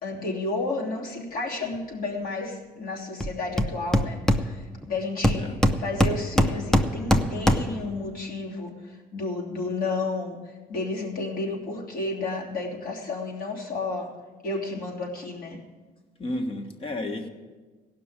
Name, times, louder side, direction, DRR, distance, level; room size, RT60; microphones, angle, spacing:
voice 1, 0.0-5.5 5.8-14.1 14.4-15.6, left 3 dB, 60° left, -2 dB, 3.0 m, -32 dB
Hammer, 3.2-3.3 3.6-4.8 5.2-7.9, left 1 dB, 5° left, 0.7 m, -22 dB
voice 2, 16.2-17.3, left 1 dB, 35° left, 5 dB, 1.5 m, -32 dB
16.5 x 6.0 x 8.8 m, 1.3 s
cardioid pair, 110°, 17 cm